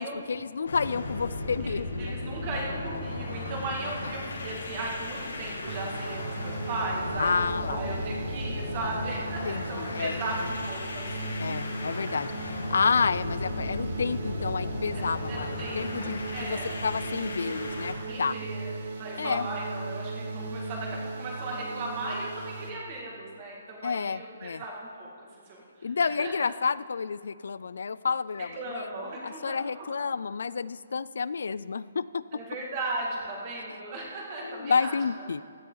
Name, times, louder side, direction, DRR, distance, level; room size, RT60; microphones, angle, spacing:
voice 1, 0.0-2.2 3.8-4.1 7.2-7.8 9.4-10.5 11.4-18.4 19.2-19.5 23.8-24.6 25.8-28.9 29.2-32.2 34.4-35.4, left 5 dB, 65° left, 18 dB, 0.4 m, -30 dB
sound 1, 0.6-18.0, left 2 dB, 90° left, 2.5 m, -36 dB
voice 2, 1.6-11.4 11.9-12.2 14.9-16.7 18.0-18.7 19.0-25.1 25.5-26.3 28.5-29.9 32.3-35.0, right 2 dB, 25° right, -2 dB, 2.2 m, -37 dB
sound 2, 5.7-22.7, right 3 dB, 50° right, 1.4 m, -37 dB
16.0 x 12.5 x 4.0 m, 2.1 s
hypercardioid pair, 175°, 0 cm